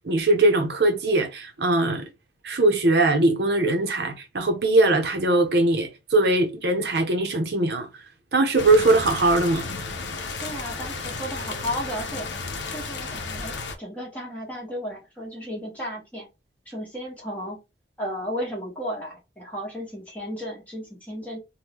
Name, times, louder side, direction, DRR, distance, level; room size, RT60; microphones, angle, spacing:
voice 1, 0.0-2.0 2.4-7.9 8.3-9.7, right 2 dB, 65° right, 0.7 m, -21 dB
sound 1, 8.6-13.8, left 4 dB, 85° left, 0.6 m, -33 dB
voice 2, 10.4-12.3 12.7-16.3 16.7-17.6 18.0-21.4, equal, 10° left, 1.3 m, -34 dB
3.5 x 2.2 x 2.9 m
head